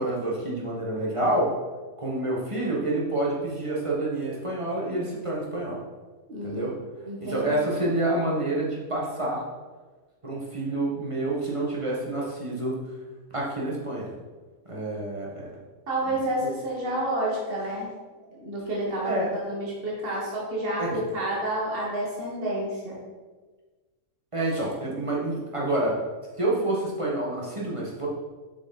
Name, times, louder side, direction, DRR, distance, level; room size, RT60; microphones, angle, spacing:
voice 1, 0.0-1.5 2.0-5.8 6.4-6.7 7.2-9.4 10.2-12.7 13.3-14.1 14.7-15.5 16.1-16.2 16.4-16.5 19.0-19.3 20.8-20.9 24.3-25.9 26.4-28.1, right 2 dB, 20° right, -5 dB, 1.6 m, -28 dB
voice 2, 6.3-6.7 7.0-7.5 15.9-17.9 18.3-23.0, right 1 dB, 40° right, -4 dB, 1.9 m, -29 dB
6.6 x 6.3 x 4.3 m, 1.3 s
omnidirectional pair, 1.5 m